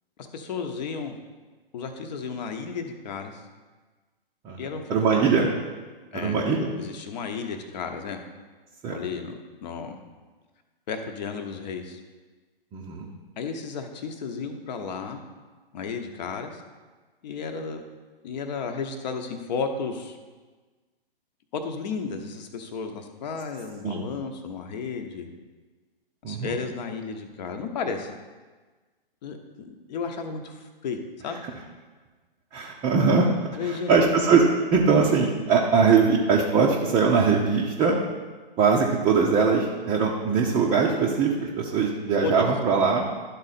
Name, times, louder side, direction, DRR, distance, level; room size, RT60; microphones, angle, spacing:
voice 1, 0.2-1.2 1.7-3.4 4.6-5.2 6.1-8.2 8.9-10.0 10.9-12.0 13.4-15.2 15.7-16.6 17.2-17.8 18.2-20.2 21.5-25.3 26.2-28.1 29.2-31.0 31.2-31.4 33.5-33.9 42.2-42.5, left 5 dB, 45° left, 5 dB, 1.0 m, -33 dB
voice 2, 4.9-5.5 6.1-6.7 8.8-9.0 12.7-13.1 23.8-24.0 26.2-26.6 32.5-33.3 33.6-34.4 34.7-38.0 38.6-43.1, right 5 dB, 15° right, -2 dB, 0.6 m, -21 dB
11.5 x 4.0 x 4.2 m, 1.3 s
hypercardioid pair, 125°, 29 cm